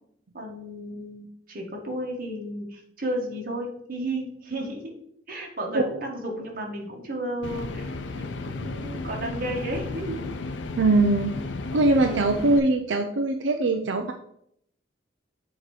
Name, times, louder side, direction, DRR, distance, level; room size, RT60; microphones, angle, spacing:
voice 1, 0.3-4.9 5.3-10.2 12.1-12.5, right 1 dB, 50° right, 0 dB, 1.6 m, -33 dB
sound 1, 7.4-12.6, left 3 dB, 75° left, 0.6 m, -34 dB
voice 2, 10.8-11.4 11.7-14.1, right 2 dB, 80° right, 5 dB, 0.5 m, -21 dB
7.3 x 3.0 x 4.8 m, 0.70 s
head